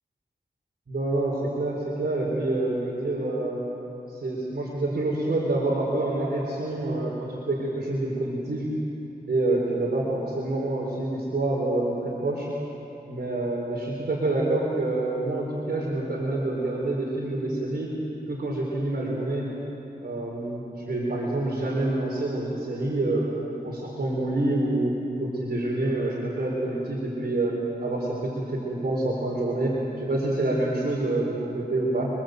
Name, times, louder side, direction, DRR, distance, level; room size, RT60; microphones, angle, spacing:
voice 1, 0.9-3.6 4.1-8.7 9.3-12.5 13.1-17.9 18.3-19.5 20.0-24.9 25.2-32.1, right 2 dB, 65° right, -3 dB, 4.4 m, -27 dB
29.0 x 23.5 x 8.0 m, 3.0 s
wide cardioid pair, 80°, 17 cm